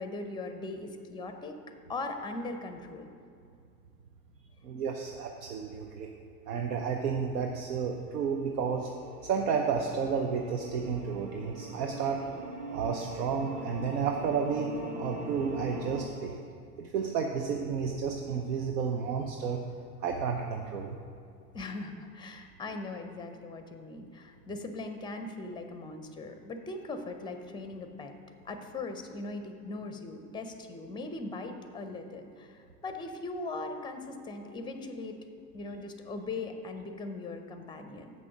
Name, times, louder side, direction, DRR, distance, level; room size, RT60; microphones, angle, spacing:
voice 1, 0.0-1.6 1.9-3.1 21.5-28.1 28.4-35.2 35.5-38.1, left 3 dB, 10° left, 7 dB, 0.6 m, -39 dB
voice 2, 4.6-6.1 6.5-8.9 9.2-12.2 12.7-16.4 16.8-19.6 20.0-21.0, right 6 dB, 70° right, 2 dB, 0.8 m, -31 dB
sound 1, 7.7-16.0, equal, 35° right, 1.5 m, -42 dB
7.3 x 6.1 x 5.8 m, 2.4 s
hypercardioid pair, 90°, 50 cm